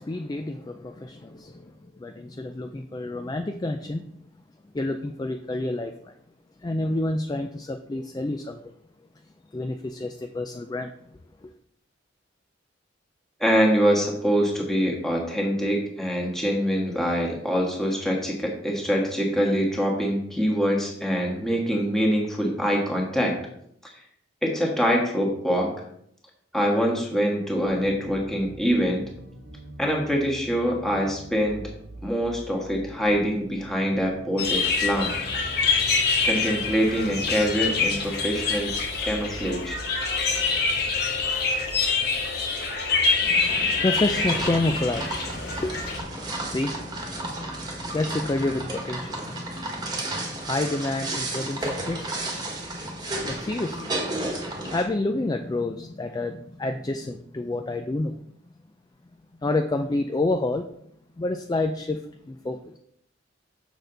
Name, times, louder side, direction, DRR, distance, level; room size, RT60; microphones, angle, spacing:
voice 1, 0.0-4.0 4.7-6.1 6.6-8.7 9.5-10.9 11.4-11.5 43.2-58.2 59.4-60.7 61.2-62.8, left 2 dB, 20° left, 0.3 m, -29 dB
voice 2, 13.4-23.4 23.8-23.9 24.4-25.7 26.5-29.1 29.8-31.7 32.0-35.1 36.2-38.7 39.0-39.8, equal, ahead, 1.4 m, -24 dB
sound 1, 27.5-42.3, right 1 dB, 75° right, 1.0 m, -44 dB
sound 2, 34.4-46.0, left 4 dB, 55° left, 1.3 m, -25 dB
sound 3, 43.9-54.8, right 2 dB, 20° right, 1.3 m, -33 dB
6.6 x 6.3 x 3.9 m
head